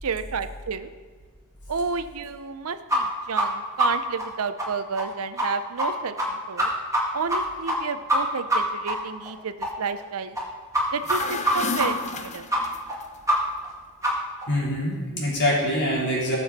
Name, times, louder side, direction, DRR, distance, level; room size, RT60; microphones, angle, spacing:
voice 1, 0.0-0.9 1.7-6.7 7.1-10.4 10.9-12.5, right 5 dB, 75° right, 11 dB, 0.6 m, -31 dB
sound 1, 2.9-3.0 3.4-3.5 3.8-3.9 4.2-4.3 4.6-4.7 5.0-5.1 5.4-5.5 5.8-5.9 6.2-6.3 6.6-7.0 7.3-7.4 7.7-7.8 8.1-8.2 8.5-8.6 8.9-9.0 9.2-9.3 9.6-9.7 10.0-10.1 10.4-10.5 10.7-10.8 11.1-11.2 11.4-11.5 11.8-11.9 12.1-12.2 12.5-12.6 12.9-13.0 13.3-13.4 13.6-13.7 14.0-14.1 14.4-14.5, equal, 15° right, 2.1 m, -23 dB
sound 2, 10.9-13.0, left 4 dB, 30° left, 0.7 m, -32 dB
voice 2, 14.5-16.4, left 1 dB, 50° left, -5 dB, 3.8 m, -24 dB
18.5 x 7.0 x 4.2 m, 1.5 s
head